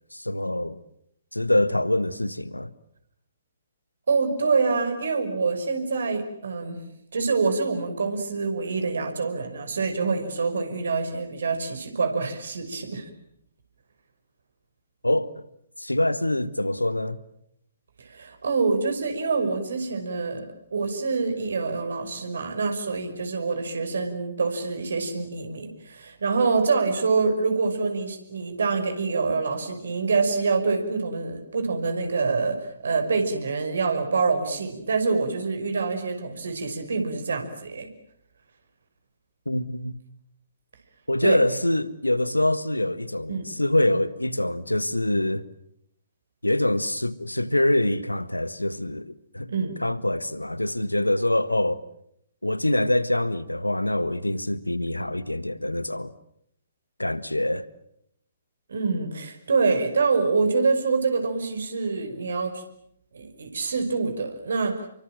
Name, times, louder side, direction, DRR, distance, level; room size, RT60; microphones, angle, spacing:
voice 1, 0.1-0.8 1.3-2.7 15.0-15.3 15.8-17.2 39.4-40.0 41.1-45.4 46.4-49.5 49.8-51.8 52.4-56.1 57.0-57.6, left 1 dB, 90° left, 1.6 m, -25 dB
voice 2, 4.1-6.8 7.1-13.1 18.0-37.9 41.2-41.4 43.3-43.5 49.5-49.7 58.7-62.6 63.1-64.8, right 4 dB, 65° right, 5.8 m, -26 dB
29.5 x 24.0 x 7.6 m
figure-of-eight pair, 125°, 0 cm